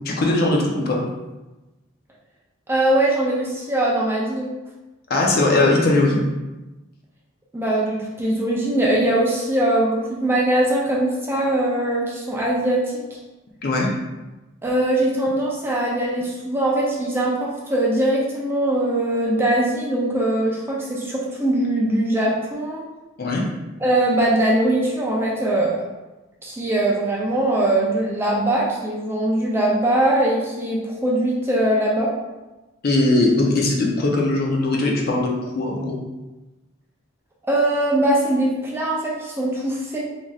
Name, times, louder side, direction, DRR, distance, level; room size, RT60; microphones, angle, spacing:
voice 1, 0.1-1.0 5.1-6.2 13.6-13.9 23.2-23.4 32.8-36.0, left 2 dB, 45° left, -1 dB, 0.5 m, -19 dB
voice 2, 2.7-4.5 7.5-13.2 14.6-22.8 23.8-25.8 26.4-32.1 37.5-40.0, right 1 dB, 10° right, -4 dB, 0.3 m, -21 dB
3.0 x 2.6 x 2.3 m, 1.1 s
head